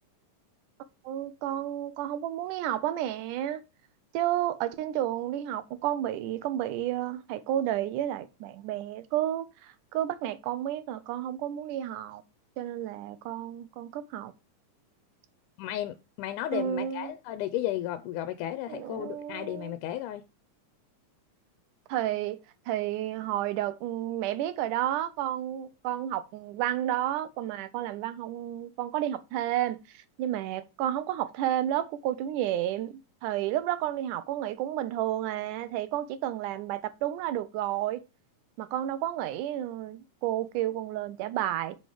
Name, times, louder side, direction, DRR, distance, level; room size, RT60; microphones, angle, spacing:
voice 1, 1.1-3.6 4.1-12.2 12.6-14.3 16.5-17.1 18.7-19.8 21.9-22.4 22.7-38.0 38.6-41.8, right 12 dB, 85° right, 2.2 m, -31 dB
voice 2, 15.6-20.2, left 13 dB, 85° left, 2.1 m, -34 dB
5.8 x 5.4 x 5.0 m
omnidirectional pair, 3.6 m